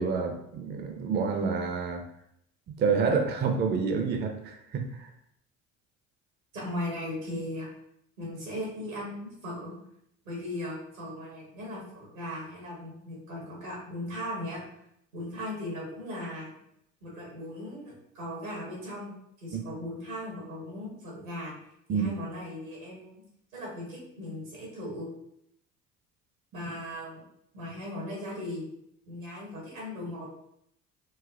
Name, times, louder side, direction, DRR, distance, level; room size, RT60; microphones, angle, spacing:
voice 1, 0.0-2.0 2.8-5.1 19.5-19.6 21.9-22.1 26.5-26.6, right 5 dB, 30° right, 5 dB, 0.4 m, -28 dB
voice 2, 6.5-7.7 8.2-9.8 10.2-14.6 15.1-16.5 17.0-19.1 19.4-21.5 21.9-23.2 23.5-25.1 26.5-27.2 27.5-28.6 29.1-30.3, left 1 dB, 90° right, -3 dB, 1.3 m, -38 dB
4.0 x 2.1 x 2.3 m, 0.74 s
hypercardioid pair, 60°, 39 cm